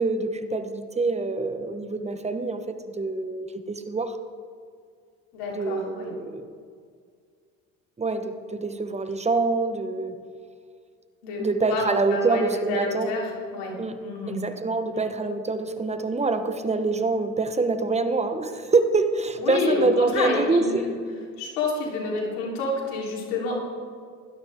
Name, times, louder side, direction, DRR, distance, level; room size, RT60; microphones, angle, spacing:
voice 1, 0.0-2.6 2.9-4.2 5.5-6.4 8.0-10.2 11.4-13.1 13.8-14.0 14.3-20.9, right 3 dB, 20° right, 9 dB, 1.1 m, -25 dB
voice 2, 5.3-6.1 11.2-12.4 12.7-13.7 14.0-14.4 14.9-15.0 19.4-20.9 21.4-23.6, left 3 dB, 90° left, -2 dB, 3.9 m, -28 dB
17.0 x 12.5 x 3.7 m, 2.1 s
supercardioid pair, 90°, 33 cm